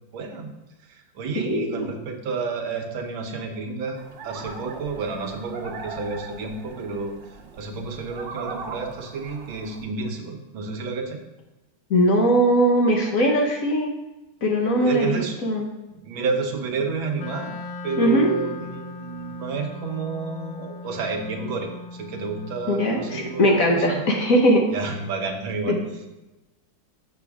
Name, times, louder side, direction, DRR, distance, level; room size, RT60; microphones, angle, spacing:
voice 1, 0.1-0.5 0.9-4.0 4.2-7.2 7.5-11.2 14.8-15.4 15.9-17.6 17.8-24.1 24.7-25.8, right 4 dB, 90° right, 4 dB, 1.8 m, -30 dB
voice 2, 1.4-1.9 11.9-13.9 14.4-15.6 18.0-18.3 22.7-24.6 25.7-25.8, equal, 55° left, 1 dB, 1.2 m, -20 dB
sound 1, 3.9-9.8, right 4 dB, 70° right, 1.5 m, -39 dB
Wind instrument woodwind instrument, 17.1-24.3, left 3 dB, 80° left, 1.4 m, -39 dB
7.0 x 6.6 x 3.5 m, 1.0 s
omnidirectional pair, 2.1 m